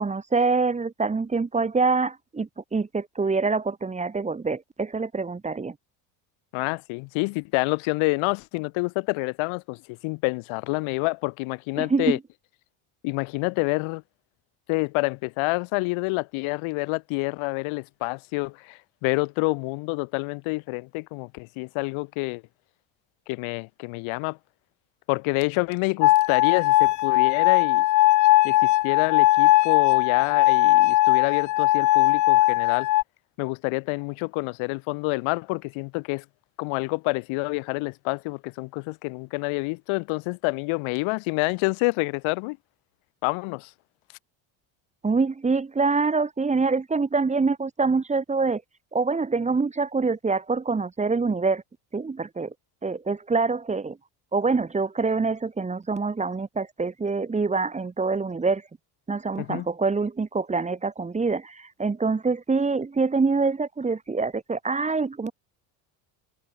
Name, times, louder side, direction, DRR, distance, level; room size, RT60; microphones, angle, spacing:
voice 1, 0.0-5.7 11.8-12.2 45.0-48.6 48.9-51.6 51.9-52.5 52.8-54.0 54.3-58.6 59.1-65.3, right 4 dB, 15° right, 1.3 m, -25 dB
voice 2, 6.5-12.2 13.0-14.0 14.7-22.4 23.3-24.4 25.1-27.8 28.4-32.9 33.4-36.2 36.6-42.6 43.2-43.7 59.4-59.7, left 27 dB, 85° left, 1.6 m, -28 dB
sound 1, 26.0-33.0, left 16 dB, 40° left, 0.5 m, -19 dB
cardioid pair, 140°, 47 cm